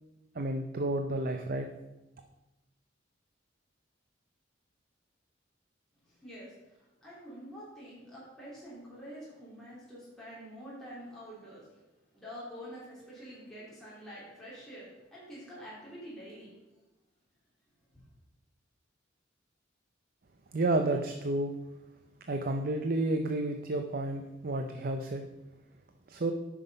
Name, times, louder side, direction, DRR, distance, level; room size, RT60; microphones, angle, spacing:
voice 1, 0.3-1.7 20.5-21.6 22.3-25.2 26.1-26.3, right 2 dB, 50° right, 5 dB, 0.6 m, -31 dB
voice 2, 6.0-11.8 12.1-16.5 17.9-18.0, equal, ahead, -9 dB, 3.1 m, -47 dB
9.3 x 6.0 x 5.3 m, 1.0 s
head